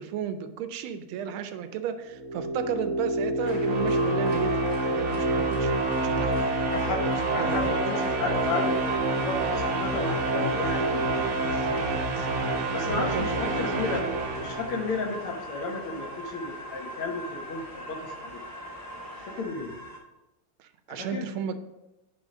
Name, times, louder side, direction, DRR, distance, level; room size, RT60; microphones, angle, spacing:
voice 1, 0.0-6.4 7.4-7.8 11.4-12.3 12.9-13.6 20.6-21.6, right 8 dB, 80° right, 10 dB, 1.4 m, -34 dB
sound 1, 2.1-15.2, right 2 dB, 60° right, 1.0 m, -27 dB
sound 2, 3.4-19.4, left 1 dB, 50° left, 2.3 m, -41 dB
voice 2, 6.6-7.0 7.3-11.1 12.7-14.1 14.4-18.4 19.3-19.8 20.9-21.3, left 3 dB, 80° left, 1 dB, 2.1 m, -33 dB
sound 3, 8.4-20.0, right 1 dB, 10° left, 1.0 m, -43 dB
9.8 x 3.3 x 4.9 m, 0.99 s
omnidirectional pair, 2.4 m